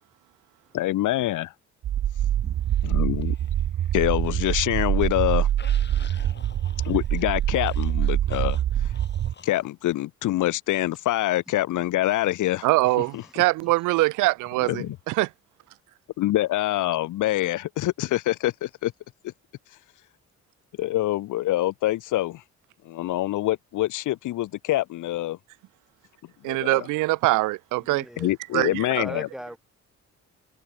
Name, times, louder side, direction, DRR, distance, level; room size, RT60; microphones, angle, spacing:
voice 1, 0.7-1.5 2.8-3.3 3.9-5.5 6.8-8.9 9.4-12.7 13.1-13.2 14.6-15.0 16.2-18.9 20.8-22.4 22.8-25.4 26.5-26.9 28.2-29.3, left 15 dB, 80° left, 1.5 m, -25 dB
sound 1, 1.8-9.3, right 11 dB, 55° right, 1.0 m, -25 dB
sound 2, 2.7-4.0 4.4-9.7, left 5 dB, 35° left, 5.0 m, -50 dB
voice 2, 12.6-15.3 26.4-28.1 28.5-29.0, right 20 dB, 90° right, 0.5 m, -23 dB
voice 3, 27.8-28.3 29.0-29.6, equal, ahead, 2.9 m, -38 dB
cardioid pair, 90°, 30 cm